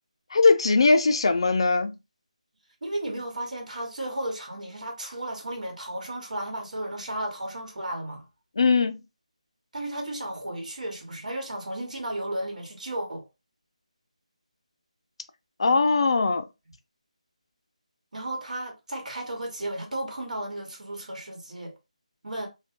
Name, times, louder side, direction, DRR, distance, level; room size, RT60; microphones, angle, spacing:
voice 1, 0.3-1.9 8.6-8.9 15.6-16.5, left 4 dB, 45° left, 0.3 m, -20 dB
voice 2, 2.8-8.2 9.7-13.2 18.1-21.7 22.2-22.5, right 1 dB, 80° right, 1.2 m, -34 dB
2.6 x 2.2 x 2.5 m
figure-of-eight pair, 170°, 4 cm